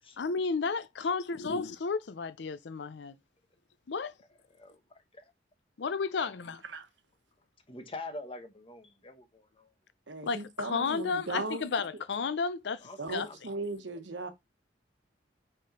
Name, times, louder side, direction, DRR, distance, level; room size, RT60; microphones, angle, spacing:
voice 1, 0.2-3.1 3.9-4.1 5.8-6.6 10.2-13.3, left 4 dB, 70° left, 0.5 m, -32 dB
voice 2, 4.2-5.3 6.2-6.4 7.7-9.7 12.8-13.6, left 2 dB, 30° left, 1.2 m, -46 dB
voice 3, 10.1-11.6 13.0-14.3, right 2 dB, 75° right, 1.1 m, -37 dB
5.4 x 3.6 x 5.1 m
head